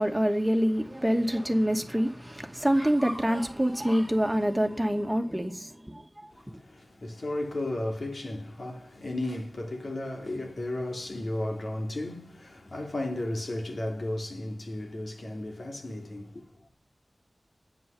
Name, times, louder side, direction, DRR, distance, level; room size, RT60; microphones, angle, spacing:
voice 1, 0.0-5.7, equal, 10° right, 2.3 m, -26 dB
voice 2, 6.3-16.7, left 1 dB, 65° left, 2.9 m, -34 dB
9.9 x 9.3 x 7.0 m
wide cardioid pair, 55°, 0 cm